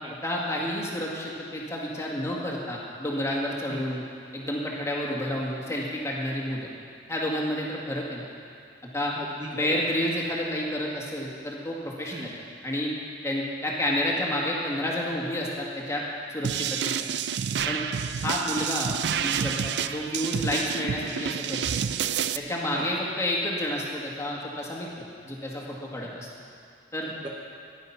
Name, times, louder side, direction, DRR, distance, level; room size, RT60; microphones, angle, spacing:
voice 1, 0.2-4.0 4.3-6.7 7.1-8.3 8.9-9.1 9.5-12.4 12.6-12.9 13.2-16.0 16.3-16.9 17.7-17.8 18.2-21.8 22.3-26.3 26.9-27.1, left 1 dB, 15° left, -3 dB, 2.0 m, -30 dB
voice 2, 9.2-9.8 12.1-12.3 22.6-22.9 27.1-27.3, right 1 dB, 25° right, -2 dB, 1.0 m, -38 dB
sound 1, 16.4-22.4, right 8 dB, 65° right, 0.4 m, -29 dB
14.5 x 10.5 x 5.8 m, 2.3 s
head